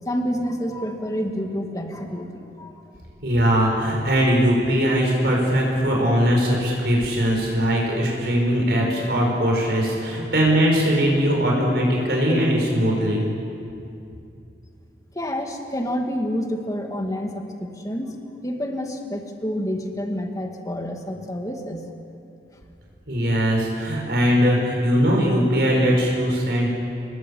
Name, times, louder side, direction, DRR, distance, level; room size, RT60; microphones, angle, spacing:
voice 1, 0.0-2.8 15.1-21.9, equal, 20° left, 3 dB, 2.3 m, -28 dB
voice 2, 3.2-13.2 23.1-26.7, equal, 65° right, -1 dB, 5.3 m, -20 dB
28.5 x 20.0 x 8.6 m, 2.7 s
head